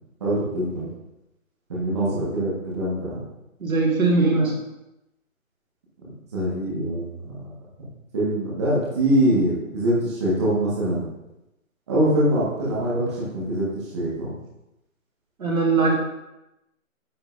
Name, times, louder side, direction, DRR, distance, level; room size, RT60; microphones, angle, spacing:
voice 1, 0.2-0.9 1.7-3.2 6.3-7.5 8.1-11.1 11.9-13.7 13.9-14.3, right 1 dB, 20° right, -7 dB, 1.5 m, -23 dB
voice 2, 3.6-4.6 15.4-15.9, right 3 dB, 75° right, -1 dB, 2.0 m, -20 dB
9.8 x 5.5 x 2.6 m, 0.92 s
hypercardioid pair, 170°, 42 cm